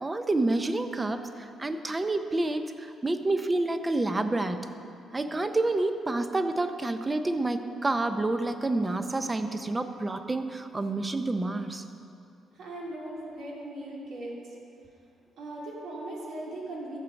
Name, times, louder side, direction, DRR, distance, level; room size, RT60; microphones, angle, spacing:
voice 1, 0.0-4.7 5.1-11.8, right 2 dB, 20° right, 9 dB, 0.7 m, -28 dB
voice 2, 12.6-14.3 15.4-17.0, right 1 dB, 75° right, -4 dB, 2.7 m, -38 dB
13.5 x 7.0 x 5.2 m, 2.7 s
cardioid pair, 90°, 0 cm